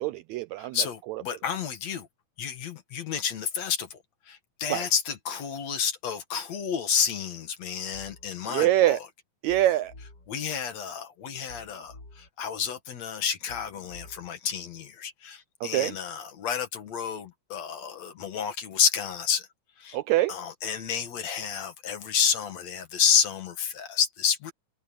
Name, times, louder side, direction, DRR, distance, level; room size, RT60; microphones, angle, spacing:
voice 1, 0.0-0.8 4.7-4.8 8.5-9.0 9.4-9.9 15.7-15.9 19.9-20.3, right 14 dB, 80° right, 1.6 m, -24 dB
voice 2, 0.6-2.1 2.4-4.0 4.3-9.1 10.3-19.5 19.8-20.0 20.3-24.5, left 7 dB, 60° left, 2.8 m, -30 dB
sound 1, 7.9-8.3 9.5-10.3 11.5-12.3 13.5-14.3, left 2 dB, 30° left, 4.9 m, -49 dB
omnidirectional pair, 3.6 m